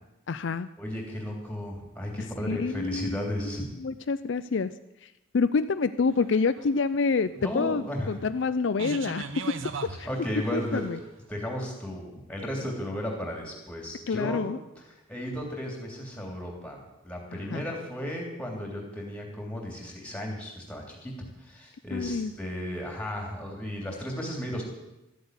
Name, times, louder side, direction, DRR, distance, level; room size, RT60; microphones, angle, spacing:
voice 1, 0.3-0.7 2.5-3.2 3.8-4.7 5.0-9.3 10.0-10.1 10.5-11.0 14.1-14.6 17.5-17.6 21.9-22.3, left 4 dB, 60° left, 12 dB, 0.4 m, -27 dB
voice 2, 0.8-3.7 7.4-8.2 10.0-10.8 11.3-14.5 14.9-24.6, equal, 5° left, 0 dB, 3.0 m, -34 dB
sound 1, 6.1-11.1, right 4 dB, 70° right, 0.9 m, -40 dB
13.5 x 8.0 x 9.4 m, 0.95 s
head